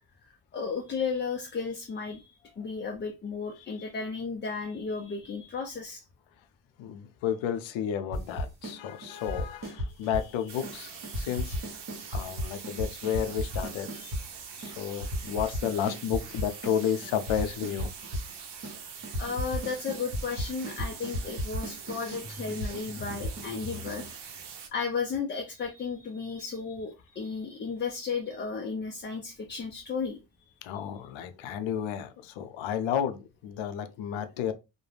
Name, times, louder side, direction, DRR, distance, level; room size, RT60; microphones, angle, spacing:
voice 1, 0.2-6.0 12.1-12.2 19.2-24.1 24.7-30.2, left 5 dB, 25° left, 0.3 m, -34 dB
voice 2, 6.8-11.6 12.1-14.2 14.6-17.9 30.6-34.5, left 9 dB, 85° left, 0.5 m, -32 dB
sound 1, 8.1-8.8 9.0-10.3 10.6-10.8 11.0-14.2 14.6-14.7 15.0-16.8 17.0-18.3 18.6-18.8 19.0-24.1, equal, 45° right, 1.1 m, -35 dB
sound 2, 10.5-24.7, right 6 dB, 65° right, 0.7 m, -44 dB
2.3 x 2.1 x 3.2 m
cardioid pair, 105°, 45 cm